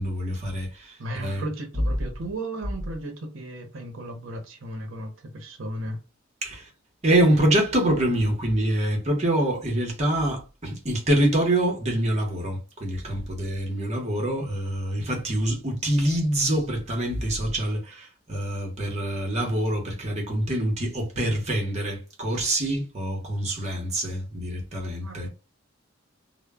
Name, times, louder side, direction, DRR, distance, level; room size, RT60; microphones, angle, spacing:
voice 1, 0.0-1.4 6.4-6.7 7.0-25.3, right 1 dB, 35° right, 0.8 m, -25 dB
voice 2, 1.0-6.0 25.0-25.3, right 1 dB, 75° right, 0.6 m, -35 dB
2.1 x 2.0 x 3.4 m
head